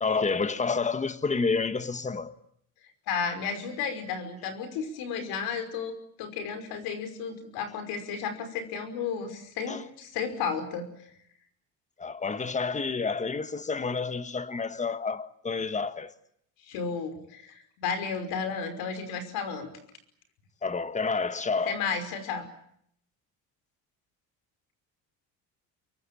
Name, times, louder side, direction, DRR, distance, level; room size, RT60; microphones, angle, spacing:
voice 1, 0.0-2.4 9.7-9.8 12.0-16.1 20.6-21.8, left 4 dB, 20° left, 1.6 m, -29 dB
voice 2, 3.1-10.9 16.6-19.7 21.7-22.5, left 6 dB, 80° left, 5.5 m, -33 dB
25.5 x 23.5 x 8.6 m
cardioid pair, 115°, 36 cm